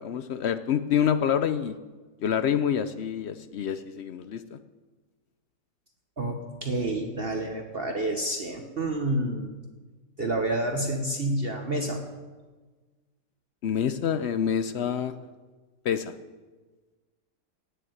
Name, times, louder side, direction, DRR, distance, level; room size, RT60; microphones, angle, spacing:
voice 1, 0.0-1.8 2.2-4.6 13.6-15.1 15.8-16.1, left 8 dB, 65° left, 12 dB, 0.6 m, -27 dB
voice 2, 6.2-9.6 10.2-12.0, right 1 dB, 40° right, 3 dB, 1.3 m, -29 dB
16.5 x 6.7 x 9.1 m, 1.3 s
omnidirectional pair, 1.8 m